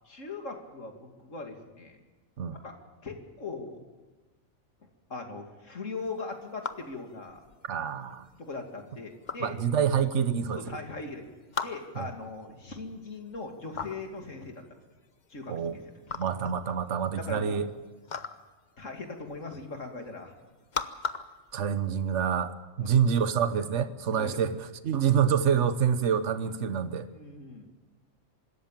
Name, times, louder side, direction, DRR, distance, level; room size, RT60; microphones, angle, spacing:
voice 1, 0.1-2.0 2.5-2.7 3.0-3.8 5.1-7.4 8.4-9.6 10.5-11.3 11.6-14.6 15.3-15.8 17.2-17.6 18.8-20.3 22.8-22.9 24.1-24.4 26.4-26.5 27.0-27.7, left 3 dB, 65° left, 2.9 m, -40 dB
sound 1, 6.1-22.4, left 5 dB, 40° left, 0.9 m, -41 dB
voice 2, 7.7-8.2 9.4-10.6 12.0-12.1 15.5-15.8 16.2-17.7 21.5-27.1, right 7 dB, 60° right, 1.3 m, -27 dB
25.0 x 13.5 x 8.9 m
omnidirectional pair, 1.4 m